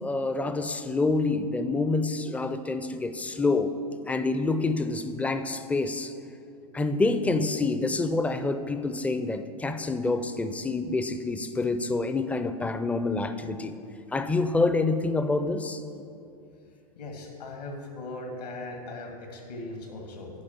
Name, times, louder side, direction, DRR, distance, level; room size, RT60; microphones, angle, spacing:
voice 1, 0.0-3.7 4.1-6.1 6.7-13.8 14.1-15.8, left 3 dB, 5° left, 10 dB, 0.4 m, -27 dB
voice 2, 17.0-20.3, left 2 dB, 75° left, 2 dB, 2.0 m, -39 dB
10.5 x 5.0 x 7.2 m, 2.7 s
figure-of-eight pair, 95°, 21 cm